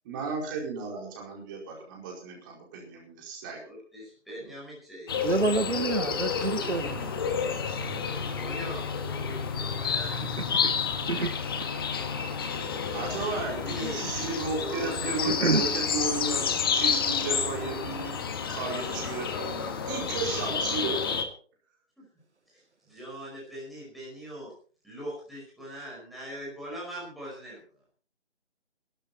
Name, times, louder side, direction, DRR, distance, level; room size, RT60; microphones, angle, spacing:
voice 1, 0.0-3.6 12.9-18.1 18.5-21.2, right 3 dB, 15° right, 0 dB, 4.7 m, -34 dB
voice 2, 3.5-5.1 8.3-10.2 13.5-14.1 14.6-15.3 15.5-15.6 22.0-22.1 22.5-24.5 24.8-27.6, equal, ahead, -6 dB, 5.1 m, -41 dB
sound 1, 5.1-21.2, left 6 dB, 20° left, 1.5 m, -30 dB
voice 3, 5.2-7.1 10.2-10.7 11.1-11.3 15.3-15.6, right 3 dB, 75° right, 13 dB, 1.4 m, -28 dB
18.5 x 13.0 x 4.3 m, 0.42 s
figure-of-eight pair, 150°, 35 cm